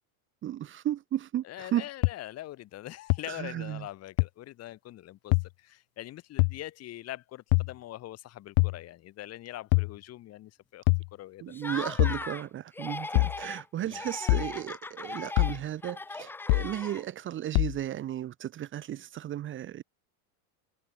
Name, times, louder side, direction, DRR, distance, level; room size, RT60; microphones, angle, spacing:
voice 1, 0.4-1.8 3.3-3.9 11.4-19.8, right 12 dB, 25° right, 1.5 m, -34 dB
voice 2, 1.4-10.8 11.1-11.6 13.8-14.0, left 14 dB, 35° left, 3.3 m, -43 dB
sound 1, 2.0-2.1 3.1-3.2 4.2-4.3 5.3-5.5 6.4-6.6 7.5-7.7 8.6-8.8 9.7-9.9 10.9-11.1 12.0-12.2 13.2-13.4 14.3-14.5 15.4-15.6 16.5-16.7 17.6-17.8, left 36 dB, 50° left, 0.6 m, -23 dB
Laughter, 11.5-12.5 12.7-13.6 13.9-17.3, left 3 dB, 5° left, 0.7 m, -39 dB
supercardioid pair, 160°, 45 cm